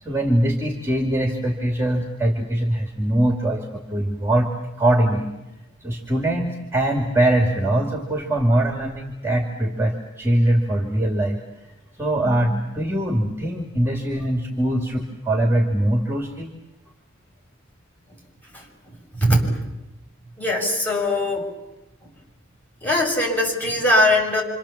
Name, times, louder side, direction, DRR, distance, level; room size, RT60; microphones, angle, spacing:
voice 1, 0.0-4.5 4.8-5.3 5.8-11.4 12.0-16.5, right 1 dB, 10° right, 2 dB, 2.3 m, -22 dB
voice 2, 19.1-19.5 20.4-21.5 22.8-24.4, left 1 dB, 10° left, -2 dB, 7.1 m, -20 dB
27.5 x 26.5 x 7.3 m, 0.98 s
head